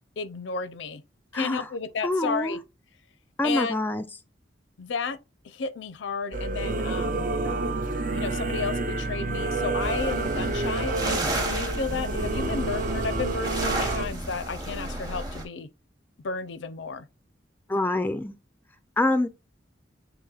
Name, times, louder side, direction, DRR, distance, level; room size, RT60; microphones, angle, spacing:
voice 1, 0.2-1.0 1.3-2.6 3.4-3.8 4.8-5.2 5.4-7.3 8.1-15.7 16.2-17.1, left 5 dB, 80° left, 0.5 m, -32 dB
voice 2, 1.3-1.7 2.0-2.6 3.4-4.0 17.7-18.4 19.0-19.3, left 2 dB, 10° left, 0.3 m, -25 dB
Singing / Musical instrument, 6.3-14.1, right 3 dB, 50° right, 0.5 m, -29 dB
sound 1, 7.4-13.6, right 1 dB, 80° right, 1.1 m, -42 dB
sound 2, 9.8-15.5, right 1 dB, 20° right, 0.9 m, -32 dB
6.9 x 3.0 x 2.3 m
head